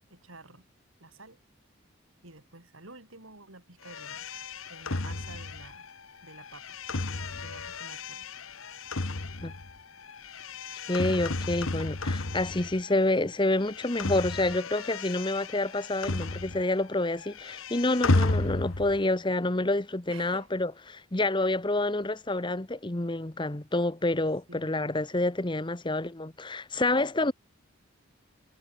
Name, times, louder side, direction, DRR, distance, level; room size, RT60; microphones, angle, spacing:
voice 1, 0.1-0.7 1.0-1.4 2.2-4.3 4.7-5.9 6.2-6.8 7.1-8.8 10.5-10.6 20.1-20.5 24.5-25.0, right 2 dB, 80° right, 7.6 m, -51 dB
sound 1, 3.8-13.1 13.4-16.9 17.1-19.0, left 2 dB, 85° left, 1.6 m, -33 dB
voice 2, 10.9-27.3, left 2 dB, 25° left, 1.0 m, -28 dB
head